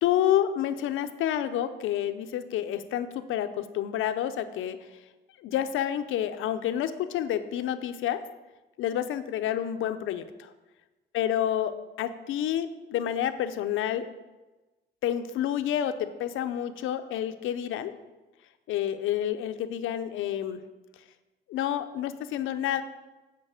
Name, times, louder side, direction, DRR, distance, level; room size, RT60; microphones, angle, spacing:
voice 1, 0.0-4.8 5.4-8.2 8.8-10.5 11.1-14.1 15.0-17.9 18.7-20.6 21.5-22.8, left 10 dB, 85° left, 10 dB, 0.7 m, -29 dB
9.0 x 5.2 x 6.4 m, 1.1 s
cardioid pair, 90°, 20 cm